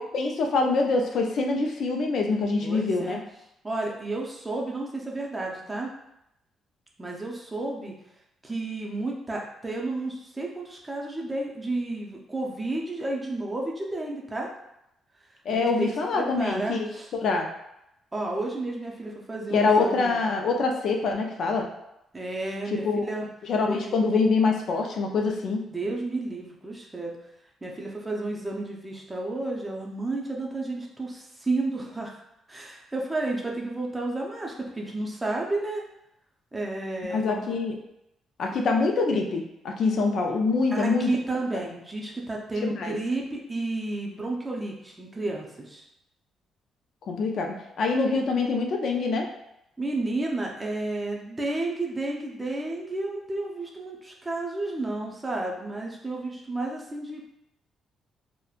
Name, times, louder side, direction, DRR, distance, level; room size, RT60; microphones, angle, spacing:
voice 1, 0.0-3.2 15.5-16.9 17.2-17.5 19.5-21.7 22.7-23.1 23.5-25.6 37.1-37.8 38.4-41.1 42.6-43.0 47.0-49.3, left 4 dB, 65° left, 2 dB, 0.4 m, -25 dB
voice 2, 2.6-3.2 3.6-5.9 7.0-7.9 8.4-14.5 15.5-17.1 18.1-20.2 22.1-23.3 23.7-24.0 25.7-27.2 27.6-32.2 32.5-35.8 36.5-37.5 38.6-38.7 40.7-45.8 49.8-57.2, right 2 dB, 15° right, -1 dB, 0.5 m, -32 dB
2.9 x 2.1 x 2.3 m, 0.83 s
cardioid pair, 90°, 0 cm